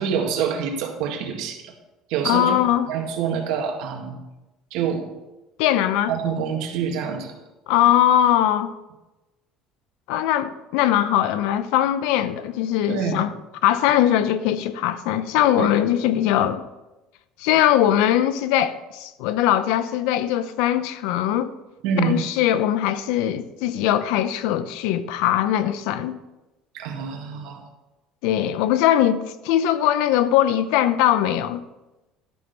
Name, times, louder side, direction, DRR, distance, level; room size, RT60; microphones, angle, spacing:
voice 1, 0.0-1.7 2.1-2.6 2.9-4.2 4.7-5.1 6.1-7.3 12.9-13.2 15.6-15.7 21.8-22.2 26.7-27.6, right 6 dB, 70° right, 1.9 m, -26 dB
voice 2, 2.2-2.9 5.6-6.1 7.7-8.7 10.1-13.3 13.6-16.6 17.4-21.5 22.0-26.2 28.2-31.6, left 11 dB, 75° left, 0.6 m, -21 dB
12.5 x 6.1 x 5.4 m
cardioid pair, 170°, 0 cm